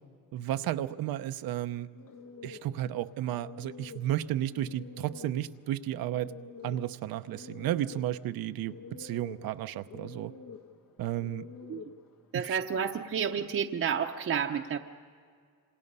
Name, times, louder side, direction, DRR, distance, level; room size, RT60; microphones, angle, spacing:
voice 1, 0.3-1.9 2.4-6.3 6.6-10.3 11.0-11.4 12.3-12.6, right 12 dB, 80° right, 11 dB, 0.8 m, -33 dB
sound 1, 1.9-13.5, left 5 dB, 65° left, 1.6 m, -48 dB
voice 2, 12.3-14.8, right 7 dB, 40° right, 2 dB, 0.8 m, -30 dB
26.5 x 26.5 x 5.5 m, 2.1 s
cardioid pair, 115°, 35 cm